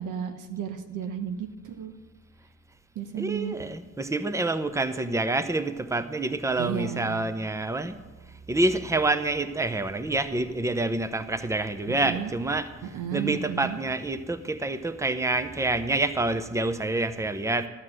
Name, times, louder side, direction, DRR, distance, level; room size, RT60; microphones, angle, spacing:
voice 1, 0.0-1.9 2.9-3.6 6.6-7.3 11.9-12.3 12.8-13.8, right 8 dB, 85° right, 7 dB, 1.0 m, -33 dB
voice 2, 3.2-8.0 8.3-17.7, right 2 dB, 10° right, 11 dB, 0.7 m, -27 dB
13.0 x 5.9 x 7.9 m, 1.2 s
cardioid pair, 90°, 30 cm